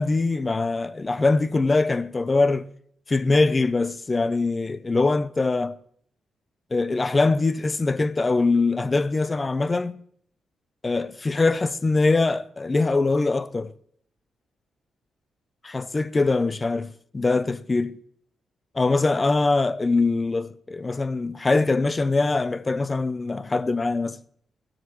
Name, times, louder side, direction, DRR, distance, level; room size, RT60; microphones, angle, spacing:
voice 1, 0.0-2.7 3.1-5.8 6.7-10.0 10.8-13.7 15.6-18.0 18.7-24.2, left 3 dB, 25° left, 0.5 m, -23 dB
14.5 x 9.9 x 3.1 m
cardioid pair, 125°, 0 cm